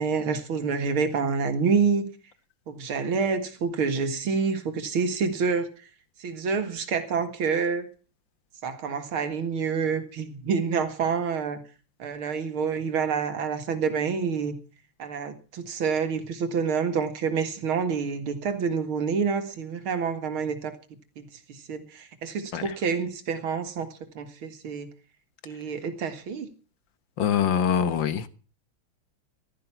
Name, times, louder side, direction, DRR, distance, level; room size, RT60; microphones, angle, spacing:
voice 1, 0.0-2.1 2.7-5.7 6.2-7.9 8.6-11.6 12.0-14.6 15.0-20.7 21.2-23.9 24.2-24.9 25.5-26.5, right 5 dB, 90° right, 2.6 m, -27 dB
voice 2, 27.2-28.3, left 8 dB, 65° left, 1.9 m, -24 dB
15.5 x 12.5 x 5.9 m
omnidirectional pair, 2.3 m